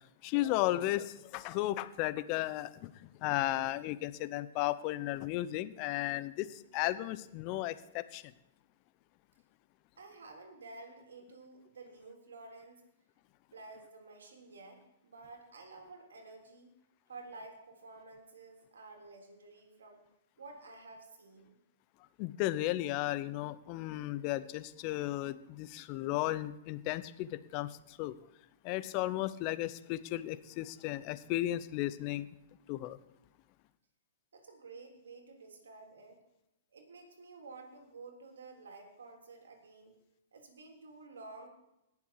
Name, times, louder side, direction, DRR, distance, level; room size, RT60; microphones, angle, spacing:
voice 1, 0.2-8.2 22.2-28.2 28.6-32.3 32.7-33.0, left 15 dB, 40° left, 15 dB, 0.7 m, -34 dB
voice 2, 10.0-12.8 13.5-16.7 17.1-20.0 20.4-21.6 34.3-36.2 36.7-40.0 40.3-41.5, right 3 dB, 90° right, 2 dB, 3.4 m, -51 dB
19.0 x 7.1 x 4.8 m, 0.88 s
hypercardioid pair, 130°, 0 cm